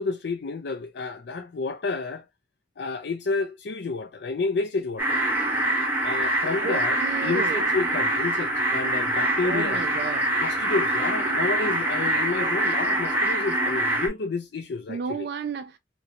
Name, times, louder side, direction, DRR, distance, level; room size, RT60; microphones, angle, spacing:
voice 1, 0.0-2.2 2.8-5.2 6.0-9.8 10.4-15.3, left 4 dB, 70° left, 0.4 m, -30 dB
sound 1, 5.0-14.1, right 1 dB, 10° right, 1.0 m, -25 dB
voice 2, 6.6-7.7 9.4-10.3 14.9-15.8, right 5 dB, 60° right, 0.3 m, -32 dB
3.0 x 2.5 x 2.7 m
head